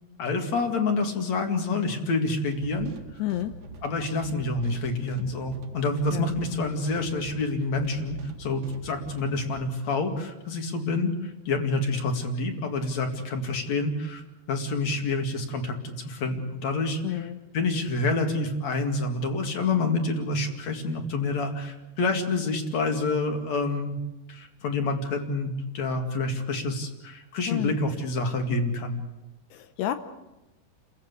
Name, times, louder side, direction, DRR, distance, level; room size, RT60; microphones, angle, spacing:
voice 1, 0.2-2.9 3.8-14.2 14.5-17.3 17.5-24.0 24.3-29.0, left 3 dB, 50° left, 5 dB, 3.0 m, -28 dB
sound 1, 2.5-9.6, right 2 dB, 50° right, 2.8 m, -44 dB
voice 2, 3.2-3.6 6.1-6.4 17.0-17.4 27.5-27.8 29.5-30.0, left 13 dB, 80° left, 8 dB, 2.9 m, -30 dB
30.0 x 15.5 x 8.3 m, 0.99 s
omnidirectional pair, 4.6 m